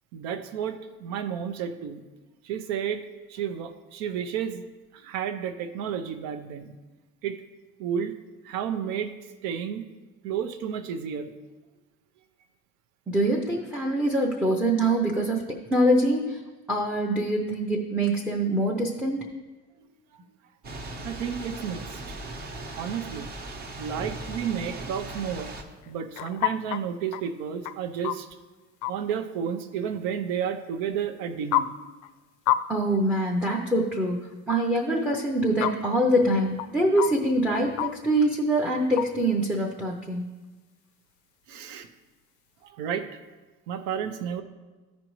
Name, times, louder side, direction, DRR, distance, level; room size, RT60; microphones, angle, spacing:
voice 1, 0.1-2.0 2.4-3.0 3.3-4.6 4.9-6.7 7.2-7.4 7.8-8.1 8.4-9.1 9.4-9.8 10.2-11.3 19.8-20.2 21.0-22.0 22.8-23.3 23.8-25.5 25.9-28.3 28.9-31.7 41.5-41.9 42.6-43.0 43.7-44.4, right 8 dB, 85° right, 8 dB, 0.8 m, -31 dB
voice 2, 13.1-15.4 15.7-16.4 16.7-19.2 32.7-34.2 34.5-40.3, right 1 dB, 5° right, 0 dB, 0.5 m, -24 dB
Thunder / Rain, 20.6-25.6, right 2 dB, 30° right, 0.9 m, -38 dB
sound 1, 25.7-26.8 27.1-27.3 27.6-28.3 28.8-28.9 30.9-31.0 31.5-31.6 32.0-32.1 32.5-32.6 32.9-33.0 35.0-35.1 35.6-35.7 36.3-36.4 36.6-36.7 37.0-37.1 37.8-37.9 39.0-39.1 39.4-39.5, left 15 dB, 75° left, 0.4 m, -26 dB
14.5 x 5.3 x 3.1 m, 1.2 s
cardioid pair, 165°, 30 cm